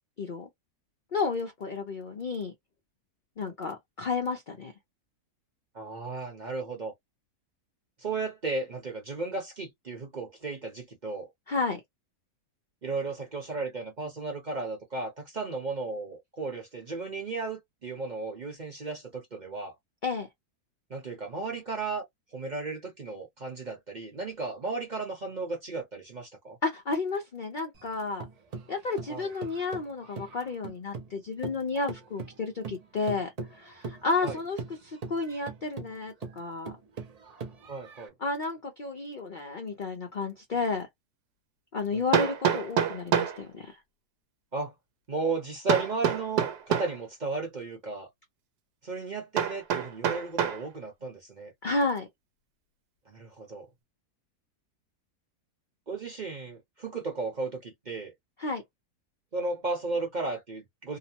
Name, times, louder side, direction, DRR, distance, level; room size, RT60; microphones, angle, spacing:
voice 1, 0.2-0.5 1.1-2.5 3.4-4.7 11.5-11.8 20.0-20.3 26.6-28.3 28.7-36.8 38.2-40.9 41.7-43.8 51.6-52.1 58.4-58.6, left 4 dB, 55° left, 0.5 m, -32 dB
voice 2, 5.7-6.9 8.0-11.3 12.8-19.8 20.9-22.0 22.3-26.6 29.1-29.3 34.2-34.4 37.6-38.1 41.9-42.0 44.5-44.7 45.1-48.1 48.8-51.5 53.1-53.7 55.9-58.1 59.3-61.0, right 3 dB, 35° right, 0.8 m, -35 dB
sound 1, 27.7-31.2 31.4-38.1, right 4 dB, 70° right, 0.3 m, -41 dB
Hammer, 40.5-40.6 42.1-43.4 45.7-47.0 49.4-50.6, right 8 dB, 85° right, 1.2 m, -27 dB
2.9 x 2.0 x 2.7 m
omnidirectional pair, 1.7 m